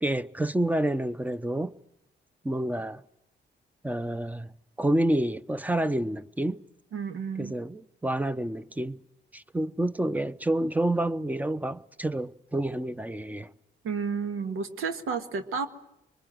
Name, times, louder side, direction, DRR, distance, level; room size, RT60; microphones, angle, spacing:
voice 1, 0.0-1.7 2.4-3.0 3.8-4.5 4.8-6.6 7.4-9.0 9.3-13.5, right 1 dB, 5° right, 0.8 m, -28 dB
voice 2, 6.9-7.5 13.8-15.7, right 5 dB, 80° right, 1.7 m, -31 dB
24.5 x 22.0 x 7.8 m
supercardioid pair, 65°, 21 cm